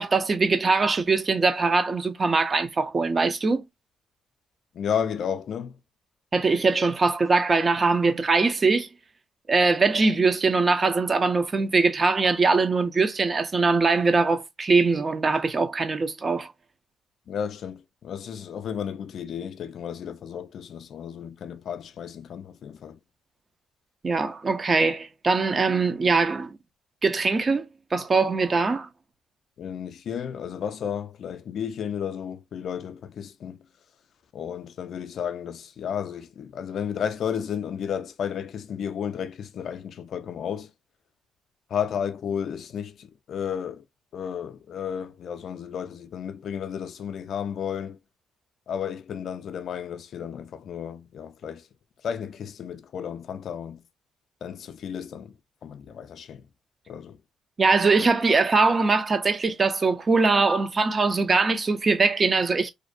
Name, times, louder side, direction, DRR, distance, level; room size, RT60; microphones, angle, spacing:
voice 1, 0.0-3.6 6.3-8.9 9.5-16.5 24.0-26.5 27.0-28.9 57.6-62.7, right 4 dB, 35° right, 0.4 m, -22 dB
voice 2, 4.7-5.8 17.3-23.0 29.6-33.6 34.3-40.7 41.7-43.8 44.1-48.0 48.7-51.7 52.0-53.8 54.4-55.3 55.6-56.4 56.9-57.2, left 8 dB, 65° left, 0.3 m, -33 dB
2.5 x 2.1 x 2.4 m
cardioid pair, 90°, 0 cm